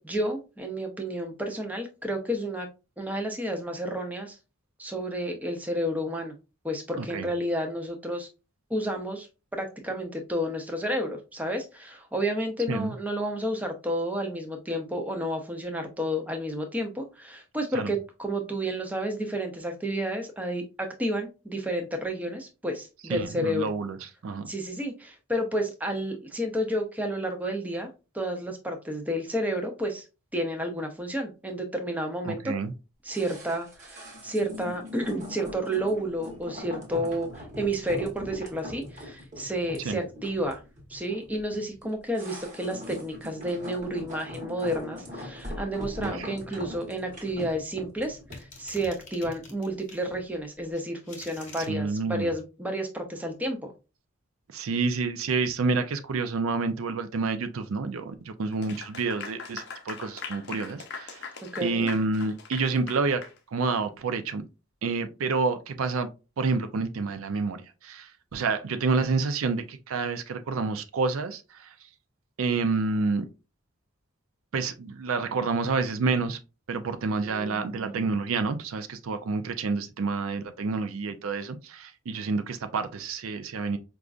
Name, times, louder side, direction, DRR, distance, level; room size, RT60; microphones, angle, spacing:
voice 1, 0.0-2.7 3.0-4.4 4.8-6.3 6.6-8.3 8.7-9.3 9.5-23.7 24.5-30.0 30.3-32.5 33.0-40.6 40.9-53.7 61.5-61.9 77.2-78.1, equal, 5° right, 0.5 m, -31 dB
voice 2, 7.0-7.3 12.7-12.9 17.7-17.9 23.1-24.5 32.2-32.7 39.8-40.0 46.0-46.3 51.7-52.3 54.5-61.2 61.6-64.4 64.8-66.1 66.4-71.7 72.4-73.2 74.5-76.4 76.7-83.8, right 4 dB, 75° right, 0.4 m, -29 dB
sound 1, 33.1-50.3 50.6-50.7, left 1 dB, 35° right, 1.1 m, -41 dB
sound 2, 48.3-50.0 50.7-51.7, left 3 dB, 35° left, 1.0 m, -46 dB
Clapping / Applause, 58.5-63.4, left 5 dB, 50° left, 0.5 m, -41 dB
5.0 x 2.3 x 2.4 m
head